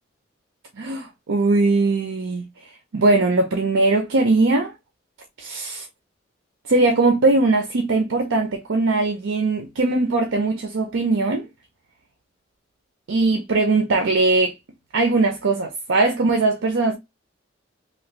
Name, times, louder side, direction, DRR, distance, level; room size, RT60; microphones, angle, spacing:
voice 1, 0.8-2.4 2.9-4.7 5.4-5.9 6.7-11.5 13.1-14.5 14.9-17.0, right 3 dB, 80° right, 0.5 m, -20 dB
3.1 x 2.5 x 3.0 m
head